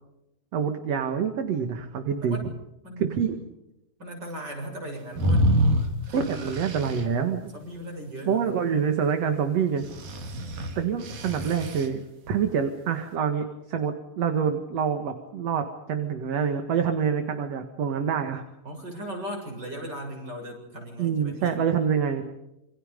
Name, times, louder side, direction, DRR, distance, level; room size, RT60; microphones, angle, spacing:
voice 1, 0.5-2.5 3.0-3.4 6.1-7.5 8.3-9.8 10.8-18.4 21.0-22.2, right 7 dB, 55° right, 7 dB, 2.6 m, -26 dB
voice 2, 2.8-3.3 4.0-5.5 6.1-8.6 18.6-21.6, equal, 30° right, 3 dB, 7.8 m, -38 dB
sound 1, 5.2-7.0 9.8-11.9, equal, 75° right, 4.6 m, -26 dB
27.5 x 26.5 x 5.3 m, 0.89 s
omnidirectional pair, 4.0 m